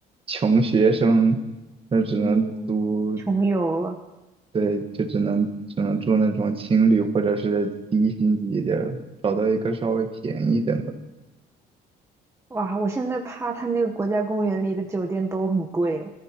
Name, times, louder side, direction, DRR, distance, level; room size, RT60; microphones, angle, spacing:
voice 1, 0.3-1.4 1.9-3.2 4.5-5.5 5.8-10.8, right 4 dB, 35° right, 5 dB, 1.6 m, -22 dB
voice 2, 2.2-2.6 3.3-4.0 12.5-16.1, right 3 dB, 15° right, 2 dB, 1.1 m, -25 dB
25.5 x 14.0 x 3.1 m, 1.0 s
cardioid pair, 110°, 17 cm